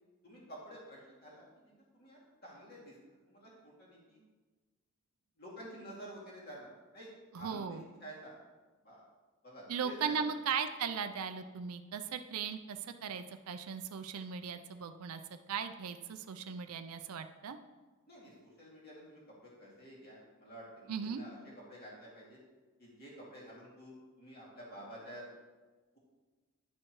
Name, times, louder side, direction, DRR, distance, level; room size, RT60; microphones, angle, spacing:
voice 1, 0.2-3.0 3.3-4.2 5.4-7.1 7.3-8.4 8.8-9.0 9.4-10.3 18.1-22.4 22.8-25.2, right 1 dB, 45° left, -5 dB, 2.3 m, -50 dB
voice 2, 7.3-7.8 9.7-15.2 15.5-17.6 20.9-21.2, right 6 dB, 75° right, 8 dB, 0.4 m, -38 dB
10.0 x 6.3 x 3.0 m, 1.3 s
head